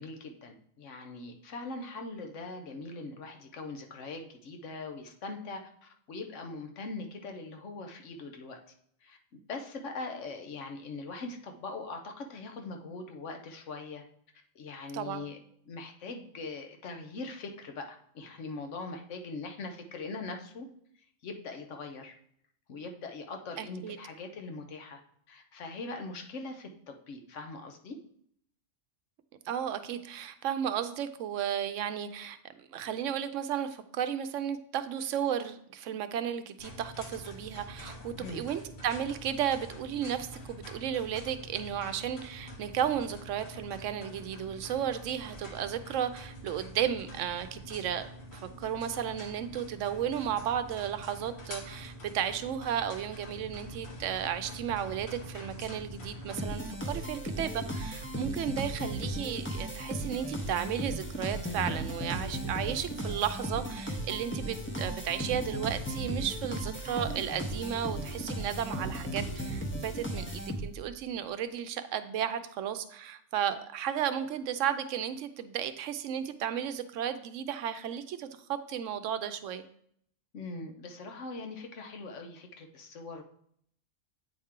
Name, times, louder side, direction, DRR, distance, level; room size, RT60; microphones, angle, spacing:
voice 1, 0.0-8.6 9.0-9.2 9.5-14.0 14.5-15.4 15.7-20.7 20.9-22.1 22.7-25.0 25.3-28.0 38.2-38.5 80.3-83.2, left 3 dB, 75° left, 4 dB, 1.2 m, -41 dB
voice 2, 23.6-24.0 29.5-48.1 48.3-79.6, right 9 dB, 80° right, 11 dB, 0.9 m, -34 dB
sound 1, 36.6-56.4, equal, 60° left, 1.4 m, -46 dB
sound 2, 56.4-70.9, right 1 dB, 15° left, 0.6 m, -36 dB
8.4 x 4.3 x 3.7 m, 0.67 s
omnidirectional pair, 1.3 m